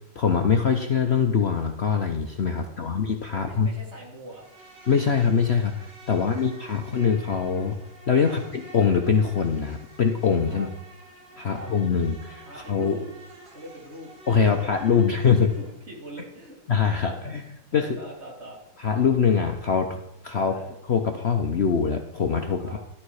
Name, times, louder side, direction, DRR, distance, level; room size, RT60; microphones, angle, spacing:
voice 1, 0.1-3.7 4.9-7.8 8.1-10.7 11.4-13.0 14.3-15.5 16.7-17.4 17.7-18.0 18.8-20.0 20.2-20.5 20.9-22.8, left 6 dB, 80° left, 4 dB, 0.5 m, -23 dB
voice 2, 2.5-2.9 3.3-4.5 6.1-7.0 8.2-8.4 10.5-10.7 11.3-11.7 12.4-13.1 13.5-14.1 15.3-16.6 17.0-17.3 17.7-18.6 20.3-20.7 22.6-22.8, right 1 dB, 30° right, -3 dB, 3.5 m, -43 dB
Insect, 4.3-15.7, right 1 dB, 60° right, 3.8 m, -48 dB
12.5 x 11.5 x 4.8 m, 0.86 s
omnidirectional pair, 2.3 m